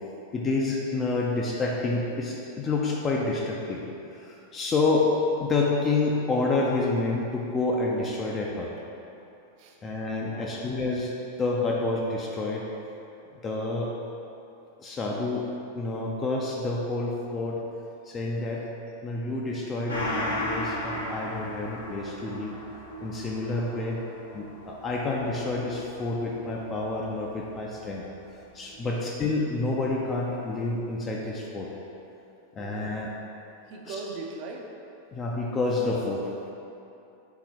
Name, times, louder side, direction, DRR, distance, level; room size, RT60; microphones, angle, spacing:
voice 1, 0.3-3.8 4.2-5.1 5.4-8.7 9.8-11.1 11.4-12.7 13.4-13.9 14.8-15.5 15.7-17.6 18.1-18.7 19.0-22.6 23.0-24.0 24.3-28.1 28.5-31.7 32.5-33.1 33.9-34.0 35.1-36.3, left 3 dB, 25° left, -2 dB, 0.4 m, -28 dB
voice 2, 10.2-10.6 27.8-27.9 28.8-29.1 31.2-31.3 32.6-32.7 33.7-34.7, right 3 dB, 45° right, 1 dB, 0.5 m, -40 dB
Gong, 19.9-28.8 29.2-29.3, left 1 dB, 80° left, 0.9 m, -37 dB
3.9 x 3.7 x 2.9 m, 2.8 s
figure-of-eight pair, 90°, 0 cm